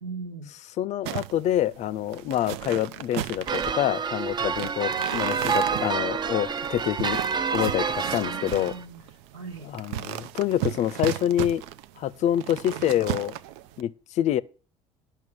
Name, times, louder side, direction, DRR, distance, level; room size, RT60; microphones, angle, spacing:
voice 1, 0.0-0.5 8.1-9.1 9.3-9.7 12.8-13.0, right 4 dB, 90° right, 1.8 m, -39 dB
voice 2, 0.8-7.2 7.5-8.7 9.6-11.6 12.0-13.4 13.8-14.4, left 11 dB, 50° left, 0.5 m, -26 dB
sound 1, 1.0-13.8, right 13 dB, 65° right, 0.5 m, -35 dB
sound 2, 3.5-8.8, right 6 dB, 30° right, 0.6 m, -28 dB
11.0 x 6.0 x 6.1 m
hypercardioid pair, 60°, 15 cm